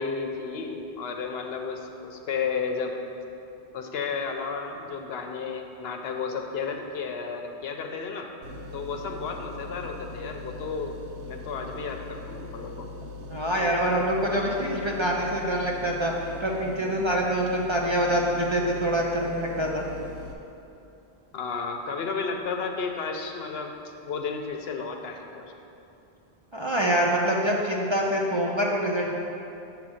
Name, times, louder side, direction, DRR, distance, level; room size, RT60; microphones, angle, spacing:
voice 1, 0.0-2.9 3.7-8.3 8.7-10.9 11.2-12.9 21.3-23.8 24.0-25.5, left 5 dB, 70° left, 4 dB, 0.9 m, -32 dB
sound 1, 8.4-20.3, left 2 dB, 85° right, 1.0 m, -40 dB
voice 2, 13.3-16.1 16.4-19.9 26.5-29.2, equal, 35° right, -2 dB, 0.5 m, -25 dB
8.4 x 3.4 x 6.3 m, 2.8 s
omnidirectional pair, 1.1 m